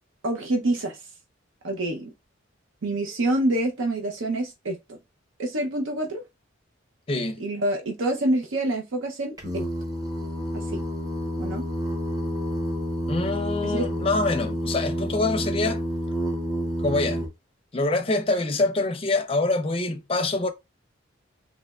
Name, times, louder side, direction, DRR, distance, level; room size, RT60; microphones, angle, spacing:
voice 1, 0.2-1.0 1.6-2.1 2.8-4.8 5.4-6.2 7.4-9.7 10.5-10.8 11.4-11.7 13.6-13.9, right 1 dB, 75° right, 0.6 m, -26 dB
voice 2, 7.1-7.4 13.1-15.8 16.8-17.2 17.7-20.5, left 2 dB, 30° left, 0.5 m, -25 dB
Singing, 9.4-17.3, equal, 20° right, 0.8 m, -29 dB
3.3 x 3.0 x 2.3 m
head